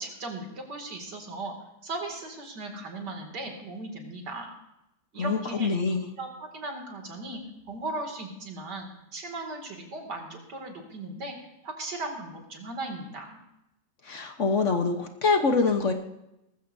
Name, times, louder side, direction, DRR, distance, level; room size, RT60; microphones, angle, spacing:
voice 1, 0.0-1.5 1.8-4.5 5.1-5.7 6.2-7.4 7.7-11.4 11.6-13.4, right 2 dB, 75° right, 2 dB, 3.0 m, -37 dB
voice 2, 5.2-6.1 14.0-15.9, left 4 dB, 50° left, 5 dB, 1.2 m, -25 dB
19.0 x 15.0 x 2.7 m, 0.87 s
omnidirectional pair, 1.8 m